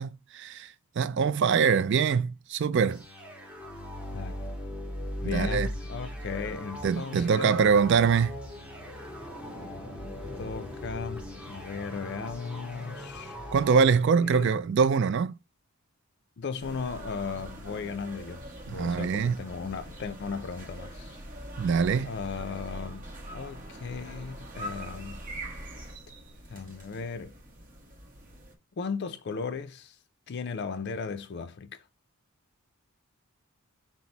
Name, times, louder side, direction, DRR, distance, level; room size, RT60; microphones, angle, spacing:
voice 1, 0.0-3.0 5.2-5.7 6.8-8.4 13.5-15.3 18.7-19.4 21.6-22.1, right 6 dB, 55° right, 0.3 m, -24 dB
sound 1, 2.9-13.9, left 1 dB, 5° right, 0.7 m, -39 dB
voice 2, 5.2-7.8 10.0-13.4 14.2-14.6 16.4-21.2 22.0-25.2 26.5-27.3 28.8-30.0 30.3-31.9, left 5 dB, 50° left, 0.4 m, -36 dB
sound 2, 16.6-28.6, right 1 dB, 40° right, 1.0 m, -43 dB
5.9 x 2.0 x 3.9 m
head